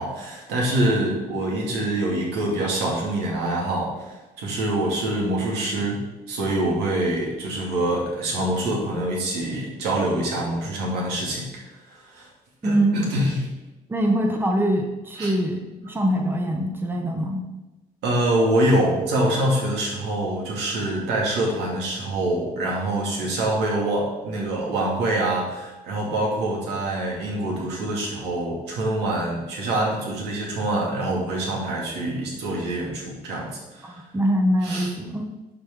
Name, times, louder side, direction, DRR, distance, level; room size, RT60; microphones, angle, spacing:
voice 1, 0.0-6.0 6.3-12.3 12.6-13.4 15.2-15.3 18.0-34.0 34.6-34.9, right 1 dB, 85° right, -3 dB, 2.6 m, -25 dB
voice 2, 12.6-13.0 13.9-17.5 33.8-35.2, right 1 dB, 10° right, 2 dB, 1.0 m, -23 dB
11.0 x 4.7 x 3.8 m, 1.1 s
cardioid pair, 110°, 17 cm